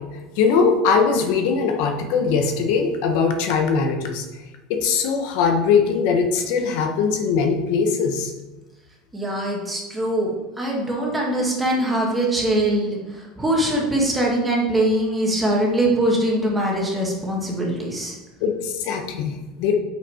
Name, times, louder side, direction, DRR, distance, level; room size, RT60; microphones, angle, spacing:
voice 1, 0.4-4.2 4.7-8.3 18.4-19.8, left 5 dB, 60° left, 4 dB, 1.1 m, -21 dB
voice 2, 9.1-10.3 10.6-18.2, right 1 dB, 10° right, -1 dB, 1.6 m, -22 dB
6.2 x 5.8 x 4.9 m, 1.1 s
supercardioid pair, 150°, 0 cm